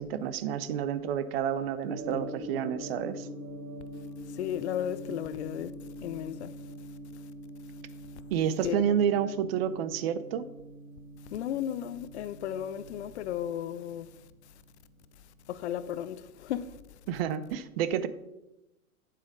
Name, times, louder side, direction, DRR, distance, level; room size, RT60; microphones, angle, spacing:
voice 1, 0.0-3.3 8.3-10.5 17.1-18.1, right 9 dB, 45° right, 0.8 m, -29 dB
Gong, 1.8-16.0, equal, 80° right, 1.4 m, -44 dB
voice 2, 4.3-6.6 8.6-9.0 11.3-14.1 15.5-17.0, left 10 dB, 55° left, 0.7 m, -35 dB
9.5 x 7.6 x 4.9 m
figure-of-eight pair, 100°, 42 cm